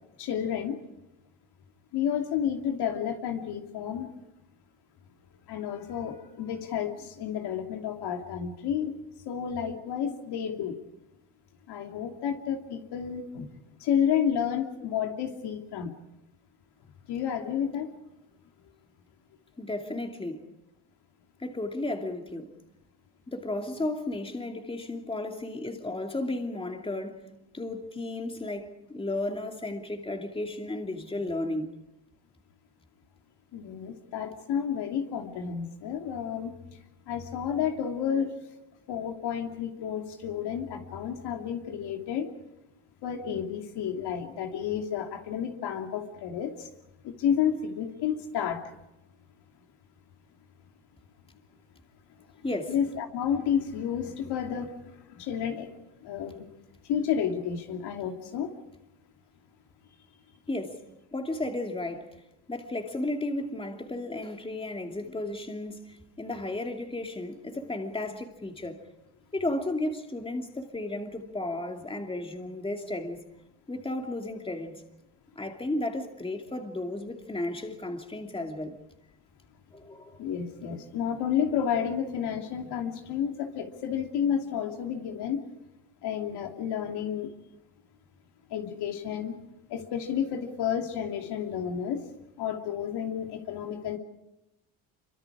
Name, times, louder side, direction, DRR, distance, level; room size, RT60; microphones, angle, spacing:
voice 1, 0.2-0.8 1.9-4.1 5.5-8.9 9.3-10.7 11.7-13.5 13.8-15.9 17.1-17.9 33.5-36.5 37.1-38.3 38.9-42.3 43.0-46.7 47.0-48.6 52.7-55.7 56.0-56.4 56.9-58.5 80.2-85.4 86.0-87.3 88.5-89.3 89.7-92.0 92.4-94.0, left 8 dB, 70° left, 2.9 m, -31 dB
voice 2, 19.6-20.5 21.4-22.5 23.3-27.2 27.5-31.8 52.4-52.7 60.5-60.8 61.1-62.1 62.5-68.8 69.3-73.2 73.7-74.8 75.4-78.8 79.7-80.2, left 2 dB, 15° left, 2.7 m, -34 dB
26.5 x 24.5 x 4.9 m
supercardioid pair, 85°, 42 cm